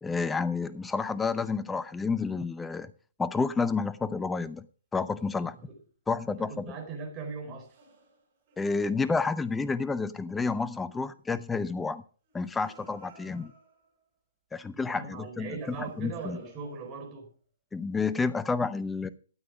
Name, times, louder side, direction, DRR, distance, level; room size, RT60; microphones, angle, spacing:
voice 1, 0.0-2.9 3.2-4.7 4.9-5.6 6.1-6.6 8.6-12.0 12.3-13.5 14.5-16.4 17.7-19.1, left 4 dB, 10° left, 15 dB, 0.6 m, -30 dB
sound 1, 0.6-2.1 5.1-5.6 7.6-9.4 12.2-14.1 15.6-17.3, right 2 dB, 45° right, 7.5 m, -57 dB
voice 2, 5.4-5.8 6.3-7.7 14.9-17.3, right 4 dB, 25° right, 3 dB, 4.2 m, -40 dB
13.0 x 8.8 x 5.1 m, 0.41 s
hypercardioid pair, 135°, 0 cm